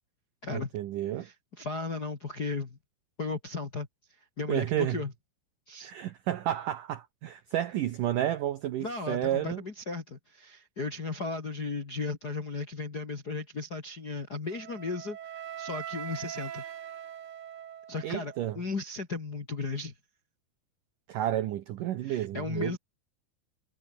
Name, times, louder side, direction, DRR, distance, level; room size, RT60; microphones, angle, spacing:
voice 1, 0.5-1.3 4.5-5.0 5.8-9.6 18.0-18.6 21.1-22.8, right 12 dB, 90° right, 1.8 m, -31 dB
voice 2, 1.2-2.8 3.2-3.9 4.4-5.1 5.7-5.9 8.8-16.6 17.9-19.9 22.0-22.8, left 3 dB, 45° left, 1.2 m, -35 dB
Wind instrument woodwind instrument, 14.5-18.6, right 10 dB, 70° right, 4.7 m, -42 dB
omnidirectional pair, 5.4 m